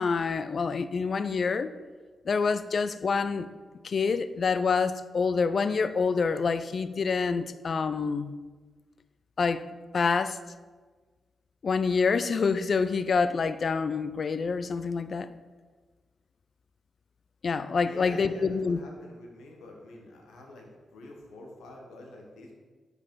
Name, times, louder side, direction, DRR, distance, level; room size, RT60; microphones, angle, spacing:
voice 1, 0.0-1.7 2.3-3.5 3.8-8.3 9.4-9.6 9.9-10.4 11.6-15.3 17.4-18.8, left 5 dB, 60° left, 13 dB, 0.3 m, -27 dB
voice 2, 17.8-22.5, left 2 dB, 80° left, 1 dB, 1.1 m, -47 dB
6.3 x 5.0 x 3.7 m, 1.4 s
supercardioid pair, 40°, 0 cm